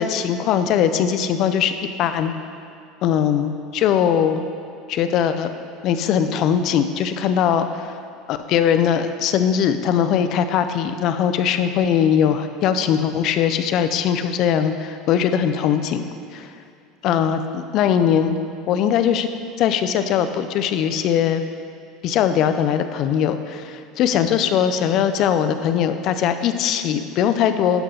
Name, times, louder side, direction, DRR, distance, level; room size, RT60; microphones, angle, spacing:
voice 1, 0.0-1.7 2.0-2.3 3.0-4.4 4.9-5.5 5.8-7.9 8.3-16.0 16.3-16.5 17.0-18.4 18.7-19.3 19.6-21.4 22.0-27.8, left 8 dB, 50° left, 9 dB, 0.5 m, -20 dB
11.5 x 5.7 x 3.9 m, 2.4 s
supercardioid pair, 130°, 0 cm